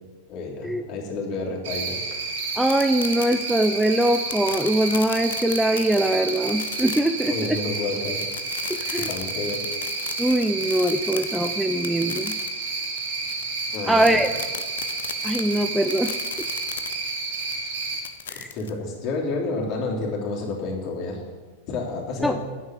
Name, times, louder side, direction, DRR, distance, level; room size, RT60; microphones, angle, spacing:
voice 1, 0.3-2.0 7.3-8.2 9.1-9.6 13.7-14.3 18.5-21.2 21.7-22.4, left 3 dB, 40° left, -2 dB, 3.3 m, -30 dB
Cricket, 1.6-18.0, right 4 dB, 55° right, 2.7 m, -30 dB
sound 1, 2.6-18.7, left 9 dB, 65° left, 0.8 m, -37 dB
voice 2, 2.6-7.6 8.8-9.1 10.2-12.4 13.9-14.3 15.2-16.2 18.3-18.5 22.2-22.4, right 1 dB, 5° right, 8 dB, 0.5 m, -22 dB
9.8 x 8.4 x 7.9 m, 1.4 s
figure-of-eight pair, 90°, 0 cm